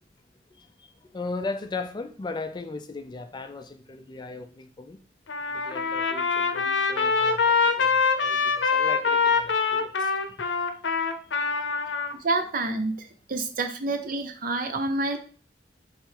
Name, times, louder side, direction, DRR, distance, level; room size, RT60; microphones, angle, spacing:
voice 1, 0.6-0.9 1.1-5.0 5.5-10.5, left 3 dB, 25° left, 0.4 m, -37 dB
Trumpet, 5.3-12.1, left 5 dB, 90° left, 0.6 m, -24 dB
voice 2, 12.2-15.2, right 2 dB, 50° right, 0.6 m, -28 dB
3.6 x 3.3 x 4.5 m
head